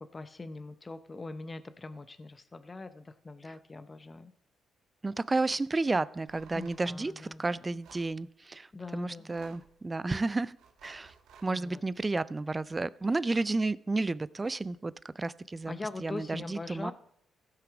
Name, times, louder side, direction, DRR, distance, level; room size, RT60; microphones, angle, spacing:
voice 1, 0.1-4.3 6.5-7.6 8.7-9.6 11.5-11.8 15.7-16.9, left 3 dB, 25° left, 0.7 m, -42 dB
voice 2, 5.0-10.6 10.8-11.1 11.4-15.7 16.0-16.9, right 3 dB, 20° right, 0.4 m, -32 dB
sound 1, 6.3-6.9 7.8-8.1 9.2-9.8 10.6-11.5, right 6 dB, 80° right, 1.4 m, -56 dB
16.0 x 5.9 x 5.1 m
cardioid pair, 90°, 0 cm